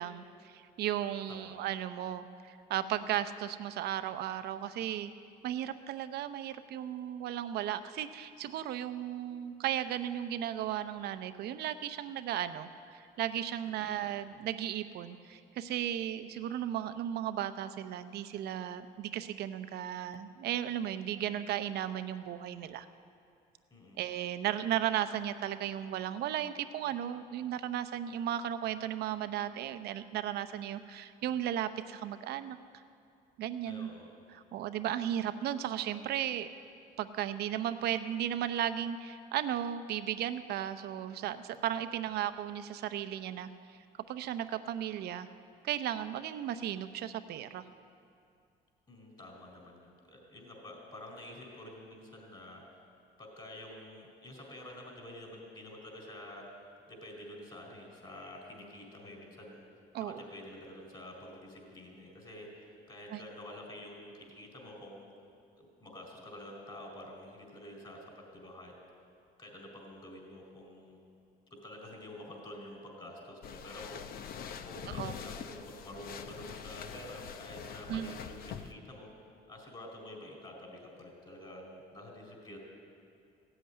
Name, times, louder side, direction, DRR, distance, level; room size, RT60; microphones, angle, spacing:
voice 1, 0.0-5.1 5.4-22.9 24.0-32.6 33.4-33.9 34.3-36.5 37.0-43.5 44.1-45.3 45.6-47.6 59.9-60.2 63.1-63.2 75.0-75.1 77.9-78.1, right 11 dB, 70° right, 11 dB, 0.7 m, -35 dB
voice 2, 33.7-34.0 48.9-52.6 53.2-56.4 56.9-59.6 60.0-65.1 65.6-68.0 68.3-68.7 69.4-71.0 71.5-74.1 74.6-79.1 79.5-82.6, left 1 dB, 30° left, 0 dB, 4.4 m, -48 dB
sound 1, 73.4-78.7, left 8 dB, 60° left, 0.8 m, -44 dB
16.0 x 8.0 x 9.4 m, 2.4 s
cardioid pair, 110°, 17 cm